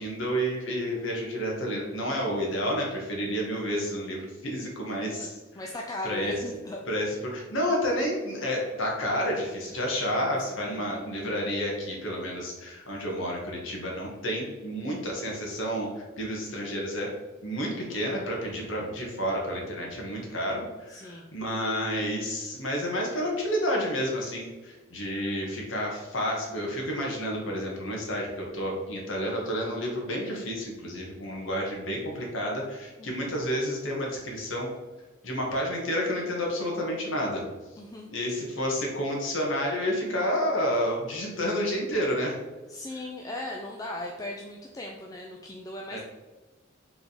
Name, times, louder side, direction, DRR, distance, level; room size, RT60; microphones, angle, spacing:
voice 1, 0.0-5.4 6.0-6.3 6.9-17.1 17.4-34.7 35.2-37.4 38.1-42.4 45.9-46.0, equal, 75° left, -1 dB, 1.5 m, -30 dB
voice 2, 5.1-6.8 10.6-10.9 20.9-21.3 33.0-33.2 37.8-38.1 42.7-46.0, left 1 dB, 20° left, 0 dB, 0.5 m, -38 dB
5.0 x 3.7 x 5.0 m, 1.2 s
head